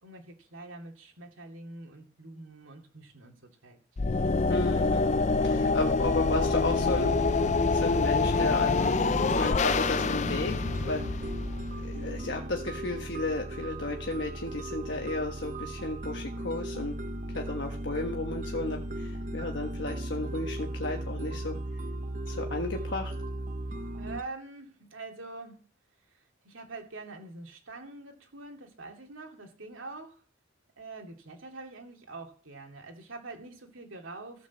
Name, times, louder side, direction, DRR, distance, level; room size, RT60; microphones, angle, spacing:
voice 1, 0.0-3.8 23.9-25.6 26.1-30.2 30.8-34.5, right 3 dB, 80° right, 2 dB, 2.4 m, -45 dB
sound 1, 4.0-12.1, left 4 dB, 35° left, 0.4 m, -26 dB
voice 2, 4.5-7.4 7.7-9.0 9.2-11.2 11.8-16.9 17.3-21.6 22.3-23.1, left 2 dB, 60° left, 2 dB, 1.3 m, -34 dB
sound 2, 6.0-24.2, right 1 dB, 40° right, 0.8 m, -36 dB
15.0 x 5.3 x 7.1 m, 0.41 s
head